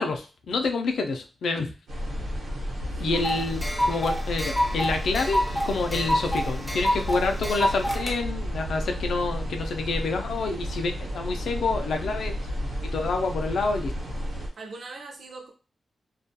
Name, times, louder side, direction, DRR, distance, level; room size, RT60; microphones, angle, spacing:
voice 1, 0.0-1.7 3.0-12.3 12.8-13.9, left 3 dB, 85° left, 5 dB, 0.4 m, -28 dB
sound 1, 1.9-14.5, equal, 75° right, 0.9 m, -32 dB
voice 2, 2.8-3.3 14.6-15.5, right 2 dB, 60° right, 2 dB, 0.4 m, -39 dB
sound 2, 3.1-8.2, equal, 5° left, 0.3 m, -28 dB
2.3 x 2.2 x 2.7 m, 0.34 s
wide cardioid pair, 140°, 0 cm